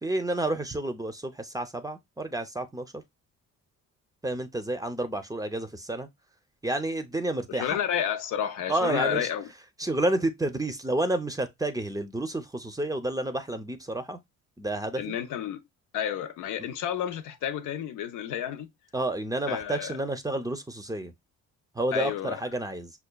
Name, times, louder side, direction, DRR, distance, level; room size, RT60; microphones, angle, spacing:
voice 1, 0.0-3.0 4.2-6.1 6.6-7.8 8.7-9.3 9.8-14.2 14.6-15.2 18.9-21.1 21.7-22.9, right 1 dB, 10° right, 0.5 m, -30 dB
voice 2, 7.5-9.5 15.0-15.6 15.9-18.7 19.5-20.0 21.9-22.4, left 9 dB, 90° left, 0.6 m, -31 dB
5.5 x 2.3 x 2.2 m
cardioid pair, 90°, 30 cm